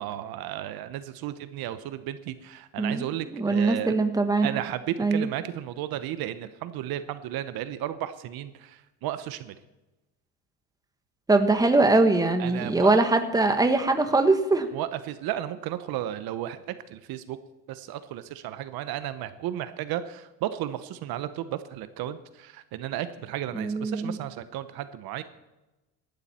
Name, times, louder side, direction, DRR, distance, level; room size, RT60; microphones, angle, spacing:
voice 1, 0.0-3.9 4.4-9.6 12.4-13.0 14.7-17.4 17.7-25.2, right 12 dB, 65° right, 12 dB, 1.0 m, -34 dB
voice 2, 3.3-4.5 5.0-5.3 11.3-14.7 23.5-24.2, right 3 dB, 10° right, 7 dB, 1.4 m, -22 dB
17.5 x 12.0 x 4.3 m, 1.0 s
cardioid pair, 125°, 40 cm